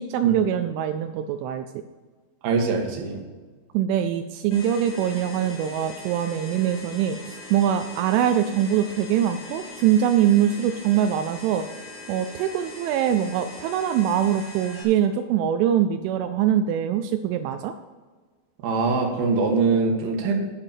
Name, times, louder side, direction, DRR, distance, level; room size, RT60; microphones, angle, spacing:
voice 1, 0.0-1.7 3.7-11.8 12.1-17.7, right 10 dB, 85° right, 8 dB, 3.0 m, -23 dB
voice 2, 2.4-3.2 18.6-20.3, right 4 dB, 60° right, 2 dB, 2.9 m, -22 dB
sound 1, 4.5-14.8, left 2 dB, 55° left, 4.9 m, -41 dB
9.8 x 6.5 x 7.2 m, 1.4 s
omnidirectional pair, 5.6 m